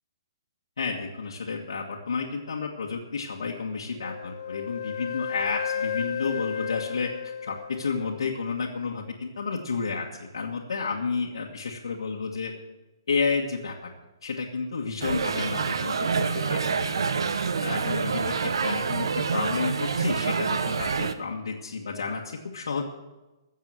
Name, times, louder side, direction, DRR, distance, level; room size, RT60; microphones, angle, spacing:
voice 1, 0.8-7.1 7.4-12.5 13.1-13.7 14.2-16.9 17.6-19.1 19.3-22.8, left 4 dB, 90° left, -2 dB, 1.6 m, -31 dB
Wind instrument woodwind instrument, 4.0-8.2, left 8 dB, 60° left, 0.4 m, -33 dB
sound 1, 15.0-21.1, right 5 dB, 80° right, 1.0 m, -27 dB
15.5 x 7.4 x 7.6 m, 1.1 s
hypercardioid pair, 165°, 2 cm